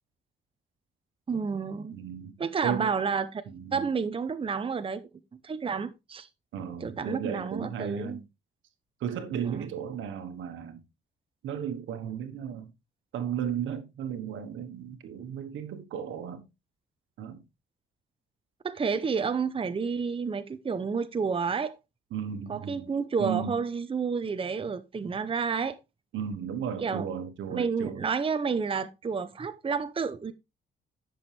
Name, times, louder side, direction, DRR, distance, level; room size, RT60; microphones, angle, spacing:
voice 1, 1.3-2.0 2.4-3.4 3.7-5.0 5.4-6.3 6.8-8.2 9.4-9.6 18.6-21.8 22.5-25.8 26.8-27.1 27.5-30.3, right 5 dB, 25° right, 0.8 m, -30 dB
voice 2, 1.9-2.3 2.6-2.9 3.5-3.8 6.5-8.2 9.0-10.8 11.4-12.7 13.1-16.5 17.2-17.4 22.1-22.9 23.2-23.6 26.1-28.1, right 8 dB, 80° right, 1.3 m, -35 dB
10.5 x 6.2 x 3.4 m
cardioid pair, 90°, 20 cm